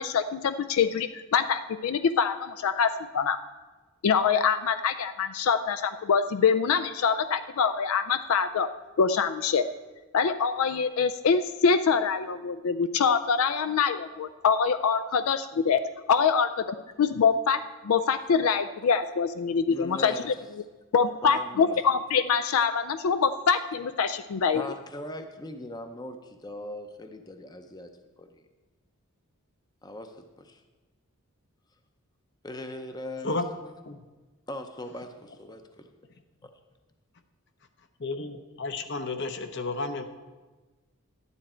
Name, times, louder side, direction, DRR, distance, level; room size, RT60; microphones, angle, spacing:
voice 1, 0.0-3.4 4.0-8.7 9.0-9.6 10.1-15.8 16.1-16.5 17.0-20.3 20.9-24.6, left 6 dB, 75° left, 12 dB, 0.4 m, -24 dB
voice 2, 19.7-20.3 21.2-21.8 24.5-27.9 28.2-28.4 29.8-30.6 32.4-33.4 34.5-35.9 36.4-36.5, left 1 dB, 20° left, 7 dB, 0.6 m, -40 dB
voice 3, 38.0-40.0, left 3 dB, 50° left, 8 dB, 0.8 m, -32 dB
12.0 x 9.9 x 4.3 m, 1.3 s
head